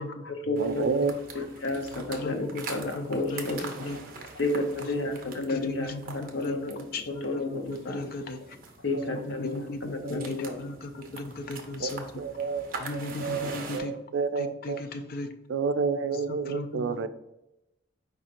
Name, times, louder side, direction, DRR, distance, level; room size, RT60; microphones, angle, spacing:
voice 1, 0.0-0.9 1.3-8.0 8.8-10.6, left 2 dB, 75° left, 4 dB, 0.7 m, -32 dB
sound 1, 0.6-13.8, right 4 dB, 45° right, 0.7 m, -44 dB
voice 2, 0.6-1.2 10.0-10.1 11.8-14.8 15.5-17.1, right 5 dB, 80° right, 11 dB, 0.4 m, -30 dB
voice 3, 5.5-6.6 6.9-7.4 7.7-8.4 9.4-12.0 12.8-13.9 14.4-15.3 16.5-17.1, left 2 dB, 50° left, 8 dB, 0.4 m, -36 dB
4.8 x 4.2 x 2.5 m, 0.88 s
head